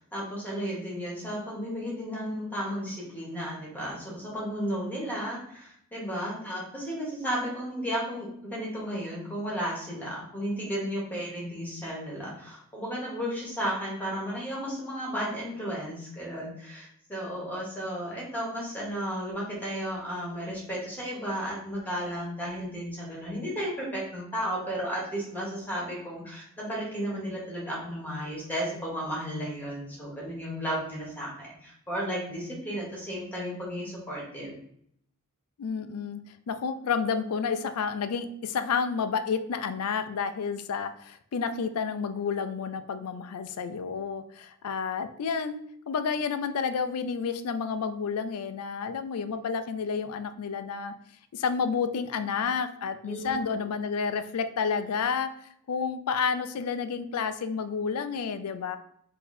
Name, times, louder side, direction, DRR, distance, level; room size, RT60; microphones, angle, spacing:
voice 1, 0.0-34.6 53.1-53.7, equal, 10° left, -4 dB, 1.3 m, -34 dB
voice 2, 35.6-36.2 36.5-45.6 45.9-50.9 51.3-55.3 55.7-58.8, left 6 dB, 80° left, 10 dB, 0.4 m, -30 dB
4.0 x 2.8 x 4.1 m, 0.68 s
head